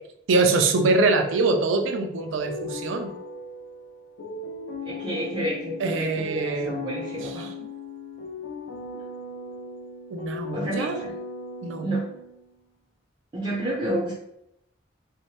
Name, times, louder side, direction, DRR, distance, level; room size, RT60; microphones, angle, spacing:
voice 1, 0.3-3.1 5.8-6.7 7.2-7.5 10.1-11.0 11.6-11.9, right 3 dB, 85° right, 6 dB, 0.4 m, -24 dB
sound 1, 0.8-12.5, left 2 dB, 65° left, 0.4 m, -38 dB
voice 2, 4.9-7.5 10.5-11.1 11.8-12.1 13.3-14.1, right 1 dB, 25° right, -4 dB, 0.4 m, -30 dB
2.7 x 2.0 x 3.2 m, 0.77 s
head